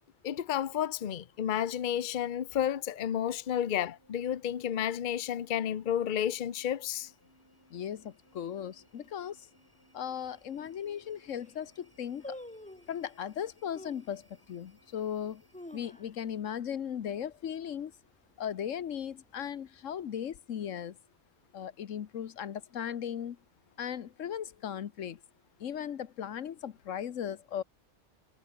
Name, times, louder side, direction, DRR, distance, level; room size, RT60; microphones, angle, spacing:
voice 1, 0.2-7.1, left 10 dB, 45° left, 0.8 m, -31 dB
sound 1, 2.6-16.2, right 1 dB, 15° right, 4.4 m, -66 dB
voice 2, 7.7-9.5 9.9-12.4 12.9-15.4 15.7-17.9 18.4-21.0 21.5-23.4 23.8-25.2 25.6-27.6, left 9 dB, 90° left, 1.4 m, -37 dB
sound 2, 10.2-10.3 10.9-11.0 11.2-11.6 12.2-13.0 13.7-14.1 14.7-14.8 15.3-16.4 16.7-16.8 17.1-17.5 17.9-18.3 18.9-19.7 19.9-20.0, left 1 dB, 5° left, 0.8 m, -47 dB
omnidirectional pair, 1.3 m